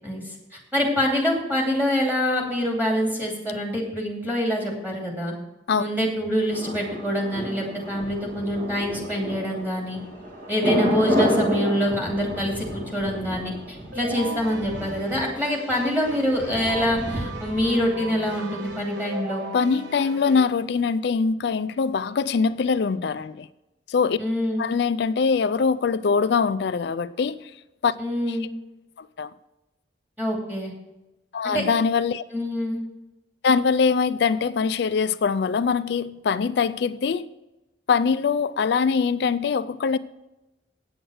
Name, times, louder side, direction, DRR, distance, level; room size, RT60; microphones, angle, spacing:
voice 1, 0.0-5.3 5.8-10.0 10.5-19.5 24.2-24.6 28.0-28.5 30.2-30.7 31.4-31.6 32.3-32.8, equal, 10° right, 2.6 m, -25 dB
Thunder, 6.5-18.4 18.7-18.8, equal, 45° right, 2.5 m, -30 dB
Keyboard (musical), 13.9-20.5, right 1 dB, 80° right, 1.6 m, -37 dB
voice 2, 19.5-23.5 23.9-24.2 24.6-27.5 27.8-27.9 28.3-28.4 29.0-29.3 31.3-32.2 33.4-37.3 37.9-40.0, left 5 dB, 60° left, 0.4 m, -23 dB
8.9 x 7.8 x 6.4 m
head